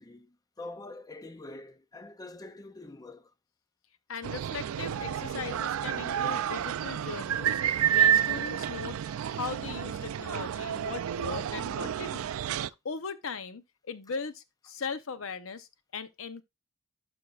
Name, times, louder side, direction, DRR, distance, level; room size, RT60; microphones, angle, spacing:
voice 1, 0.0-3.3 5.5-5.6, left 2 dB, 20° left, 0.5 m, -45 dB
voice 2, 4.1-7.6 7.9-9.0 9.3-12.3 12.8-16.4, left 5 dB, 70° left, 0.7 m, -39 dB
sound 1, 4.2-12.7, right 9 dB, 90° right, 0.3 m, -30 dB
11.5 x 5.4 x 2.4 m
head